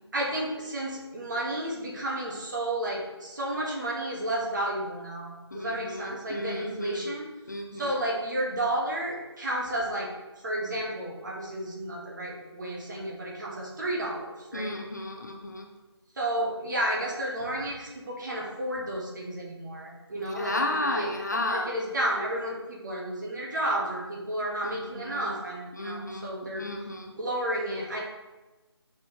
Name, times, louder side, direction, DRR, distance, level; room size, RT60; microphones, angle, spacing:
voice 1, 0.1-7.3 7.7-10.1 10.4-14.7 16.2-21.1 21.4-26.7 27.2-28.0, right 1 dB, 45° right, -3 dB, 1.5 m, -32 dB
voice 2, 5.5-7.1 7.5-7.9 14.5-15.7 20.2-21.7 24.6-25.3 25.7-27.1, left 2 dB, 40° left, 3 dB, 0.6 m, -34 dB
6.2 x 5.8 x 3.1 m, 1.1 s
figure-of-eight pair, 170°, 15 cm